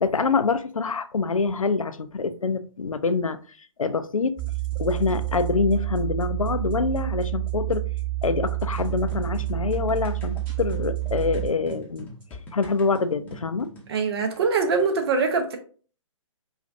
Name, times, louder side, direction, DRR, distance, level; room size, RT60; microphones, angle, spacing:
voice 1, 0.0-3.4 3.8-4.3 4.8-7.8 8.2-12.1 12.5-13.7, left 4 dB, 90° left, 0.5 m, -25 dB
sound 1, 4.4-12.2, right 17 dB, 30° right, 1.9 m, -29 dB
sound 2, 8.8-13.9, left 1 dB, 10° left, 0.8 m, -43 dB
voice 2, 13.9-15.6, right 4 dB, 50° right, 0.8 m, -23 dB
5.1 x 2.4 x 2.6 m
figure-of-eight pair, 130°, 17 cm